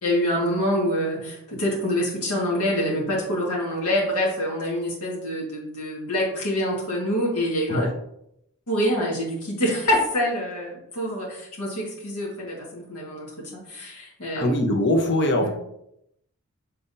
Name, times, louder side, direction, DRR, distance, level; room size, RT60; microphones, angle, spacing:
voice 1, 0.0-7.9 8.7-14.5 15.4-15.5, equal, 75° left, -4 dB, 1.9 m, -26 dB
voice 2, 14.3-15.5, left 1 dB, 55° left, 3 dB, 1.0 m, -22 dB
6.7 x 5.8 x 2.8 m, 0.77 s
head